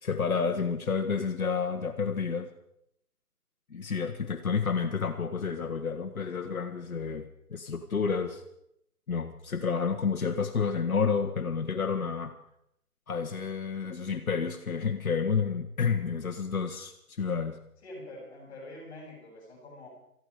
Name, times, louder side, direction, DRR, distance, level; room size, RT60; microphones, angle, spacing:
voice 1, 0.0-2.5 3.7-8.4 9.1-12.3 13.1-17.6, left 5 dB, 65° left, 5 dB, 1.5 m, -30 dB
voice 2, 17.8-19.9, left 1 dB, 10° left, -9 dB, 6.6 m, -45 dB
20.0 x 14.0 x 4.9 m, 0.76 s
hypercardioid pair, 170°, 46 cm